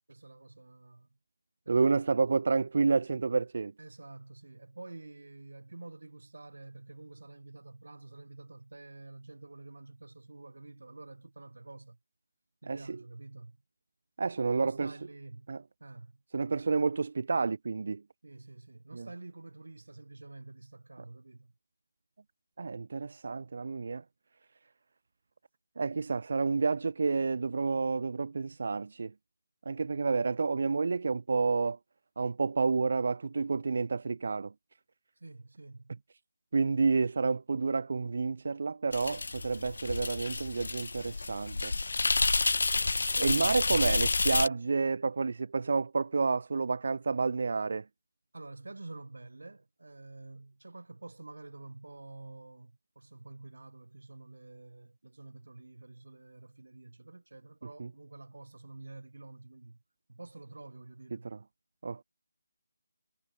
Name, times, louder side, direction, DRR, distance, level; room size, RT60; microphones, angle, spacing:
voice 1, 0.1-1.1 1.6-2.0 3.8-12.0 12.6-13.6 14.5-16.2 18.2-21.5 35.2-36.0 42.7-44.0 48.3-59.8 60.1-61.3, right 2 dB, 75° right, 6.1 m, -49 dB
voice 2, 1.7-3.7 12.7-13.0 14.2-14.9 15.5-15.6 16.3-18.0 18.9-19.1 22.6-24.0 25.8-29.1 29.6-31.8 32.2-34.5 36.5-41.8 43.2-47.9 57.8-57.9 61.1-61.4 61.8-62.0, right 4 dB, 35° right, 1.1 m, -30 dB
sound 1, 38.9-44.5, left 3 dB, 50° left, 0.7 m, -29 dB
figure-of-eight pair, 180°, 0 cm